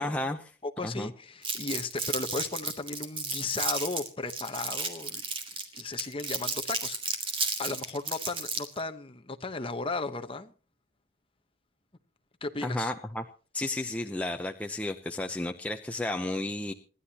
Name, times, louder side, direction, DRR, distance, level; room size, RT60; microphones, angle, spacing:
voice 1, 0.0-0.5 0.8-1.1 12.6-13.2 13.5-16.7, left 1 dB, 5° left, 4 dB, 0.7 m, -32 dB
voice 2, 0.6-5.2 5.8-7.2 7.6-10.5 12.4-12.9, left 3 dB, 25° left, 8 dB, 1.0 m, -35 dB
Crumpling crinkling, 1.4-8.8, right 4 dB, 25° right, 2.3 m, -33 dB
27.0 x 11.5 x 2.9 m, 0.37 s
head